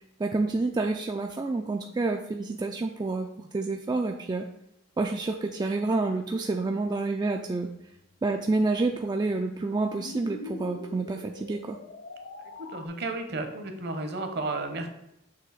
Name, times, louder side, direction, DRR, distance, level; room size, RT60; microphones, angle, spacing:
voice 1, 0.2-4.5 5.0-7.7 8.2-11.8, right 3 dB, 20° right, 3 dB, 0.3 m, -28 dB
sound 1, 7.9-12.9, left 3 dB, 65° left, 0.5 m, -44 dB
voice 2, 12.7-14.9, right 2 dB, 55° right, 6 dB, 0.9 m, -32 dB
6.8 x 2.9 x 4.8 m, 0.81 s
head